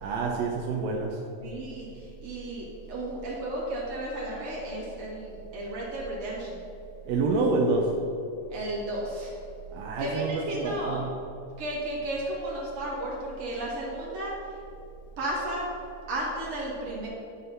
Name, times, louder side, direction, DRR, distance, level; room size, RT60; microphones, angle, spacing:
voice 1, 0.0-1.2 7.0-7.9 9.7-11.1, right 3 dB, 75° right, -1 dB, 1.7 m, -27 dB
voice 2, 1.4-6.6 8.5-9.3 10.0-11.0 11.6-14.3 15.2-15.6 16.1-17.1, right 1 dB, 55° right, -5 dB, 3.0 m, -33 dB
11.5 x 3.9 x 5.6 m, 2.7 s
omnidirectional pair, 3.7 m